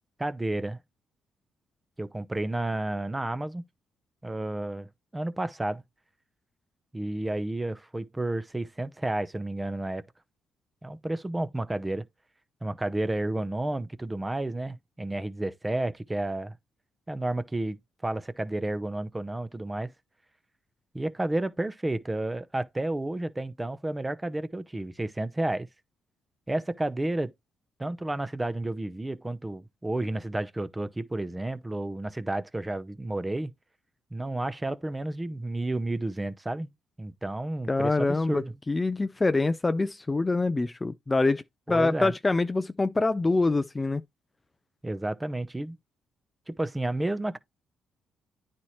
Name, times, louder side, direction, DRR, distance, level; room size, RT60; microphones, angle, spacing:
voice 1, 0.2-0.8 2.0-3.6 4.2-4.9 5.1-5.8 6.9-10.0 10.8-12.1 12.6-16.6 17.1-19.9 20.9-25.7 26.5-27.3 27.8-33.5 34.1-36.7 37.0-38.6 41.7-42.1 44.8-45.8 46.5-47.4, right 2 dB, 15° right, 0.7 m, -31 dB
voice 2, 37.7-41.4 41.7-44.0, left 3 dB, 20° left, 0.4 m, -25 dB
9.7 x 4.2 x 3.1 m
cardioid pair, 90°, 0 cm